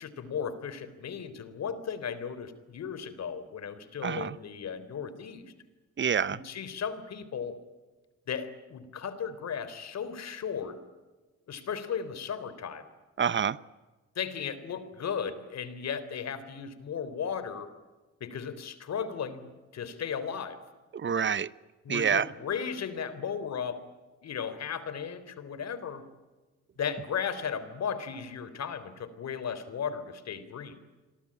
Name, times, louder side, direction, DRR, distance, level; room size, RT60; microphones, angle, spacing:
voice 1, 0.0-5.4 6.3-7.6 8.3-10.8 11.5-12.8 14.2-17.7 18.2-20.6 21.8-23.8 24.2-26.0 26.8-30.8, left 7 dB, 60° left, 3.7 m, -35 dB
voice 2, 4.0-4.4 6.0-6.4 13.2-13.6 20.9-21.5 21.9-22.3, right 7 dB, 40° right, 0.9 m, -27 dB
28.0 x 23.0 x 8.8 m
cardioid pair, 90°, 30 cm